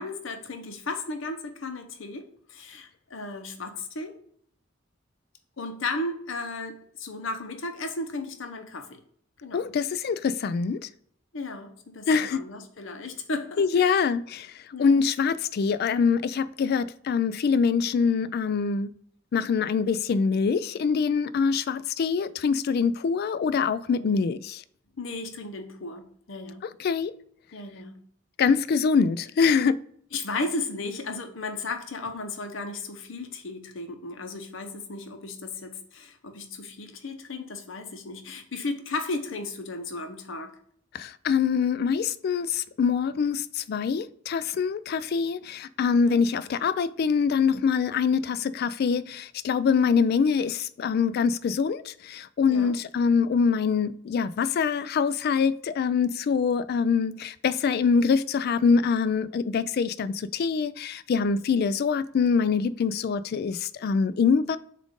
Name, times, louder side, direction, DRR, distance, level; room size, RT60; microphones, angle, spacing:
voice 1, 0.0-2.2 2.5-4.1 5.6-8.9 9.4-9.6 11.3-14.0 14.7-15.0 23.9-24.1 25.0-26.6 27.5-28.0 30.1-40.5 46.0-46.2 52.5-52.7, left 3 dB, 75° left, 0.8 m, -35 dB
voice 2, 9.5-10.9 12.1-12.5 13.6-14.5 14.8-18.9 19.3-24.6 26.8-27.1 28.4-29.8 40.9-64.6, left 5 dB, 50° left, 0.3 m, -24 dB
7.3 x 2.5 x 5.1 m
head